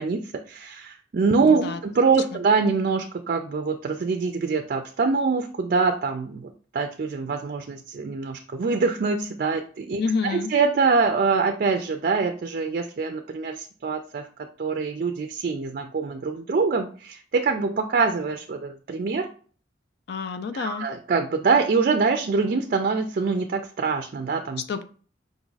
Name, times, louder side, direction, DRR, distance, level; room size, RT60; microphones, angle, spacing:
voice 1, 0.0-14.3 14.6-19.3 20.5-24.6, right 4 dB, 50° right, 6 dB, 0.4 m, -24 dB
voice 2, 1.4-1.8 2.3-2.4 10.0-10.5 20.1-20.9 24.7-24.8, left 5 dB, 60° left, 10 dB, 0.4 m, -28 dB
5.0 x 2.4 x 3.9 m, 0.42 s
head